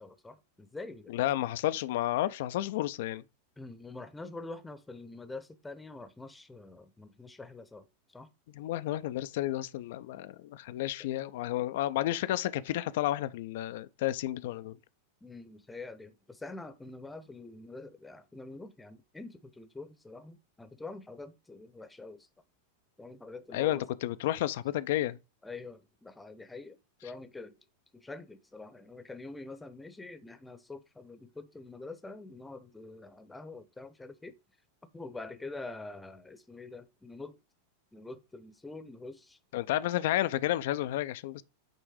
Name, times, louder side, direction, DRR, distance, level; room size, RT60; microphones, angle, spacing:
voice 1, 0.0-1.2 3.6-8.3 11.0-11.1 15.2-22.3 23.0-23.8 25.4-27.6 27.9-34.4 34.8-37.4 37.9-39.4, left 3 dB, 10° left, 0.9 m, -45 dB
voice 2, 1.1-3.2 8.5-14.8 23.5-25.2 39.5-41.4, left 14 dB, 55° left, 0.5 m, -31 dB
8.9 x 3.5 x 4.9 m
figure-of-eight pair, 90°, 0 cm